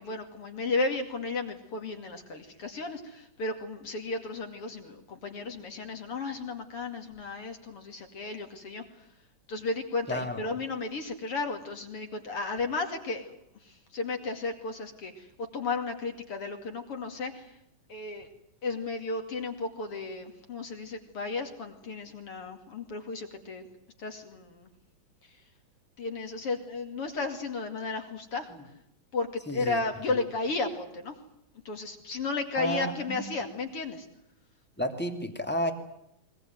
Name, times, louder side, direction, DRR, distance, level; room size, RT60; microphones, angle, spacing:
voice 1, 0.0-8.8 9.5-13.4 13.6-17.5 17.9-18.3 18.6-23.7 24.0-24.7 26.0-28.8 29.1-31.2 31.6-34.1, left 3 dB, 45° left, 5 dB, 3.0 m, -34 dB
voice 2, 10.1-10.4 29.5-29.8 32.5-33.2 34.8-35.7, equal, 5° left, 5 dB, 1.9 m, -31 dB
22.0 x 21.0 x 9.4 m, 0.79 s
omnidirectional pair, 3.9 m